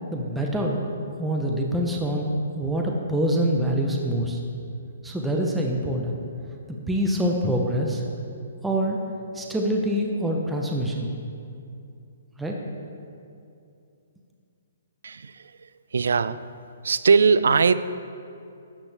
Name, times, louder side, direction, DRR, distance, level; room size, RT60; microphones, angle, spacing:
voice 1, 0.1-0.9 1.2-4.4 5.0-6.2 6.9-8.0 8.6-9.0 9.3-11.1 12.4-12.6, equal, 5° right, -1 dB, 0.6 m, -25 dB
voice 2, 15.0-16.4 16.8-17.7, right 5 dB, 85° right, 15 dB, 0.4 m, -21 dB
13.5 x 8.7 x 3.3 m, 2.5 s
hypercardioid pair, 170°, 0 cm